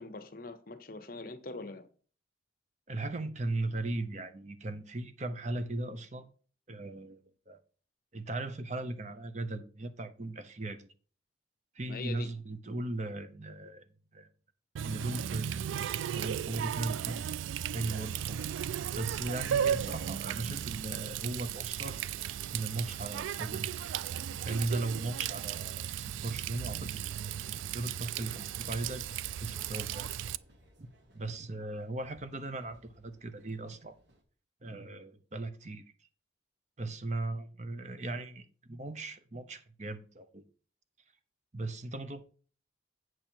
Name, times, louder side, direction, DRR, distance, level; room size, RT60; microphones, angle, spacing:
voice 1, 0.0-1.9 11.9-12.3, left 3 dB, 50° left, 0.9 m, -43 dB
voice 2, 2.9-6.3 6.7-7.6 8.1-10.9 11.7-14.3 14.8-15.8 16.1-17.3 17.7-18.4 18.9-22.0 22.5-23.7 24.4-27.0 27.5-30.1 30.8-30.9 31.1-34.0 34.6-35.9 36.8-40.4 41.5-42.2, right 2 dB, 35° right, 0.7 m, -38 dB
Water tap faucet, 14.8-30.4, right 9 dB, 85° right, 0.3 m, -35 dB
sound 1, 19.0-34.2, right 1 dB, 70° right, 1.7 m, -61 dB
8.7 x 6.2 x 4.5 m
head